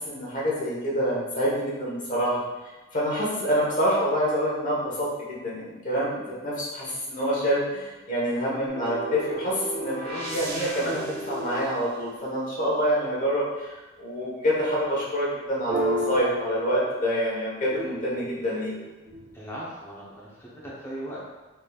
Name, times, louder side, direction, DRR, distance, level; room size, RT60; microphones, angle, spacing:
voice 1, 0.0-2.4 2.9-18.7, equal, 40° left, -7 dB, 1.2 m, -27 dB
sound 1, 8.7-12.8 15.7-17.2 17.7-19.5, right 1 dB, 50° right, 1.0 m, -33 dB
voice 2, 19.3-21.2, right 1 dB, 10° left, -7 dB, 0.8 m, -38 dB
4.0 x 3.4 x 2.4 m, 1.2 s
head